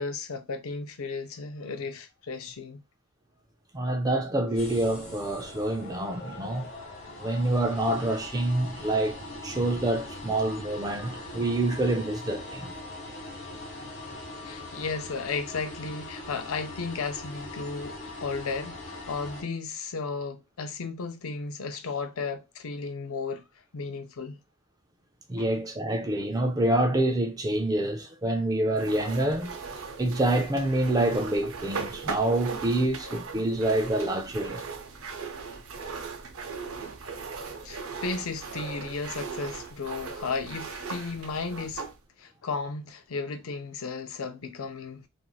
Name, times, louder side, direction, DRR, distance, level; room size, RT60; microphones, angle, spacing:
voice 1, 0.0-2.8 14.4-23.4 23.7-24.4 25.4-25.5 36.7-36.8 37.6-41.8 42.2-45.0, left 4 dB, 80° left, 0.5 m, -34 dB
voice 2, 3.7-6.7 7.2-12.7 25.3-29.5 30.0-34.6, right 1 dB, 15° right, 0.3 m, -27 dB
sound 1, 4.6-19.4, left 2 dB, 45° left, 1.3 m, -41 dB
sound 2, 28.8-42.0, right 5 dB, 75° right, 0.6 m, -38 dB
3.1 x 2.5 x 2.3 m
head